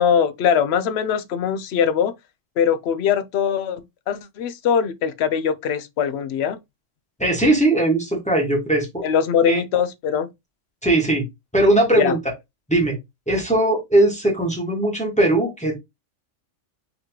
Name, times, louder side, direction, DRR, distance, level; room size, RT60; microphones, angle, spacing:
voice 1, 0.0-2.1 2.6-6.6 9.0-10.3 12.0-12.2, left 7 dB, 65° left, 0.8 m, -21 dB
voice 2, 7.2-9.0 9.5-9.6 10.8-11.2 11.5-12.2 12.7-13.0 13.3-15.8, right 1 dB, 5° left, 1.3 m, -19 dB
4.1 x 3.1 x 2.8 m
omnidirectional pair, 1.3 m